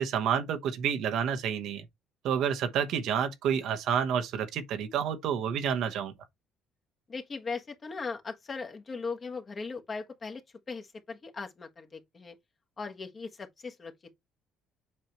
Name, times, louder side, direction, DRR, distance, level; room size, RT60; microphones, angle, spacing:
voice 1, 0.0-1.8 2.2-6.1, right 8 dB, 65° right, 1.1 m, -29 dB
voice 2, 7.1-10.4 10.7-12.4 12.8-13.9, left 4 dB, 30° left, 1.4 m, -38 dB
7.5 x 4.6 x 3.0 m
cardioid pair, 115°, 0 cm